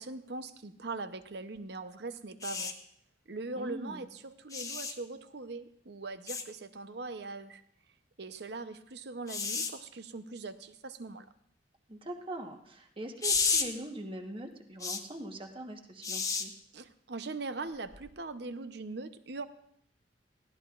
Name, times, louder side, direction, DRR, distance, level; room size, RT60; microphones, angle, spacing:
voice 1, 0.0-2.7 3.3-7.6 8.2-11.3 16.7-19.5, right 3 dB, 65° right, 10 dB, 0.8 m, -41 dB
sound 1, 2.4-2.7 4.5-4.9 6.3-6.4 9.3-9.7 13.2-13.7 14.8-15.0 16.0-16.4 17.9-18.1, left 5 dB, 20° left, 0.9 m, -31 dB
voice 2, 3.6-4.1 11.9-16.5, right 1 dB, 30° right, 4 dB, 1.3 m, -42 dB
20.0 x 15.0 x 2.5 m, 0.69 s
head